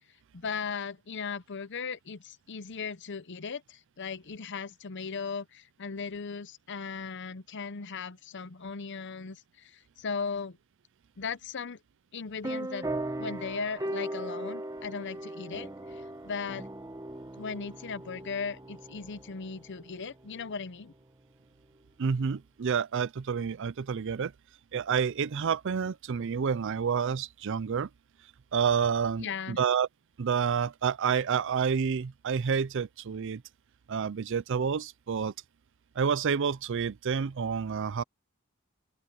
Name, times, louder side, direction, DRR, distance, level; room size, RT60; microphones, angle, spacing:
voice 1, 0.3-10.6 11.2-11.8 12.1-12.9 13.2-16.7 17.4-20.9 29.2-29.6, left 5 dB, 60° left, 0.8 m, -37 dB
sound 1, 12.4-20.5, right 1 dB, 15° right, 1.0 m, -38 dB
voice 2, 22.0-24.3 24.7-27.9 28.5-29.9 30.2-33.4 33.9-35.3 36.0-38.0, right 6 dB, 60° right, 0.5 m, -29 dB
open air
head